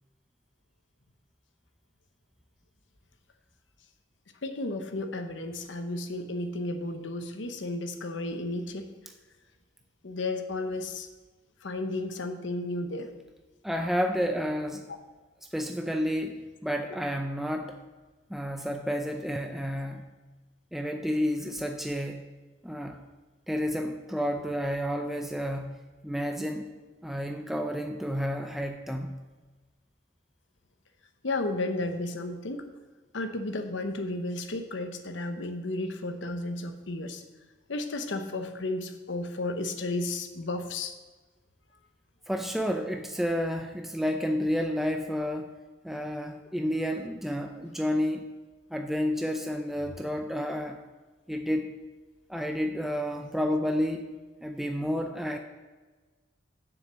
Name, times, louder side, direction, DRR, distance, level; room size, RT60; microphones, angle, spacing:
voice 1, 4.4-8.9 10.0-11.1 11.6-13.1 31.2-32.6 33.1-37.2 37.7-40.9, left 2 dB, 75° left, 7 dB, 0.9 m, -33 dB
voice 2, 13.6-14.8 15.5-17.8 18.3-20.1 20.7-22.2 22.6-23.0 23.5-26.6 27.0-29.2 42.3-45.5 45.8-48.3 48.7-50.8 51.3-51.7 52.3-54.1 54.4-55.4, equal, ahead, 4 dB, 0.4 m, -30 dB
7.2 x 6.6 x 7.4 m, 1.3 s
head